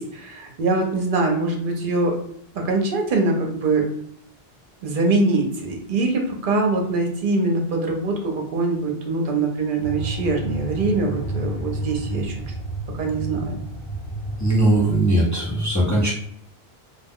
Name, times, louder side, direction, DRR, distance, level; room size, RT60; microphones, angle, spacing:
voice 1, 0.0-2.1 2.5-3.8 4.8-12.3 13.0-13.6, right 3 dB, 60° right, 1 dB, 0.8 m, -23 dB
sound 1, 9.8-15.0, right 2 dB, 70° left, 0.9 m, -31 dB
voice 2, 14.4-16.1, right 1 dB, 20° left, -5 dB, 0.6 m, -19 dB
2.3 x 2.3 x 3.5 m, 0.67 s
omnidirectional pair, 1.0 m